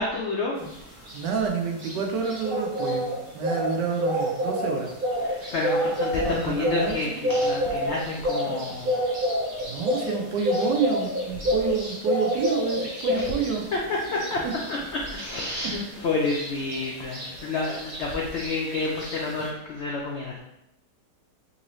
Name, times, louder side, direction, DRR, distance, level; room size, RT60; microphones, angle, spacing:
voice 1, 0.0-1.1 5.2-9.1 13.1-13.2 13.9-14.8 15.1-20.4, left 3 dB, 80° left, -2 dB, 0.6 m, -29 dB
sound 1, 0.6-19.5, equal, 45° right, 0.8 m, -29 dB
voice 2, 1.1-3.1 3.3-4.9 6.2-7.2 9.7-13.7, right 6 dB, 85° right, 2 dB, 1.3 m, -28 dB
3.8 x 2.7 x 3.0 m, 0.83 s
omnidirectional pair, 1.8 m